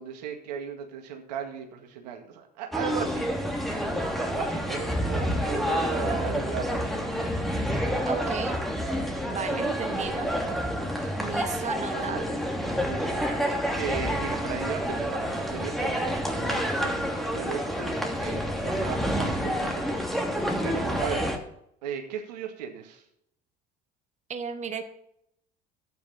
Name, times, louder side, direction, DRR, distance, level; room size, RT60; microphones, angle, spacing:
voice 1, 0.0-3.3 4.1-7.3 9.4-10.0 11.0-11.2 11.9-12.3 12.8-21.3 21.8-23.0, right 8 dB, 80° right, 4 dB, 2.0 m, -37 dB
sound 1, 2.7-21.4, equal, ahead, 2.7 m, -28 dB
voice 2, 8.1-8.6 9.2-10.3 11.1-12.4 24.3-24.8, right 6 dB, 35° right, 7 dB, 1.4 m, -34 dB
12.0 x 9.5 x 4.2 m, 0.74 s
hypercardioid pair, 70°, 21 cm